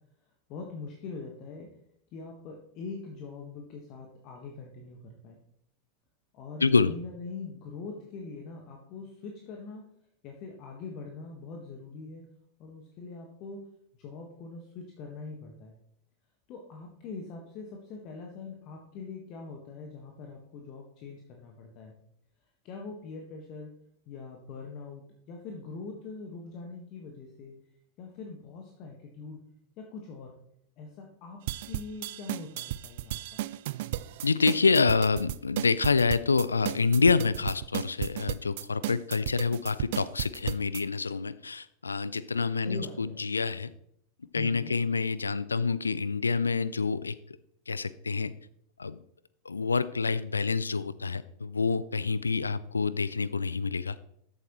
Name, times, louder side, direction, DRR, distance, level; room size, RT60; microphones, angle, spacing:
voice 1, 0.5-1.7 2.1-5.4 6.3-9.8 10.2-12.3 12.6-13.6 14.0-15.7 16.5-21.9 22.6-23.7 24.1-27.5 28.0-29.4 29.8-30.3 30.8-31.4 31.6-33.4 42.6-43.2 44.3-44.7, left 4 dB, 40° left, 1 dB, 1.5 m, -43 dB
voice 2, 6.6-6.9 34.2-43.7 44.3-47.2 47.7-48.3 48.8-49.0 49.5-54.0, left 4 dB, 75° left, 18 dB, 0.4 m, -27 dB
sound 1, 31.5-40.8, right 15 dB, 55° right, 0.3 m, -34 dB
13.5 x 8.0 x 3.1 m, 0.73 s
figure-of-eight pair, 90°, 0 cm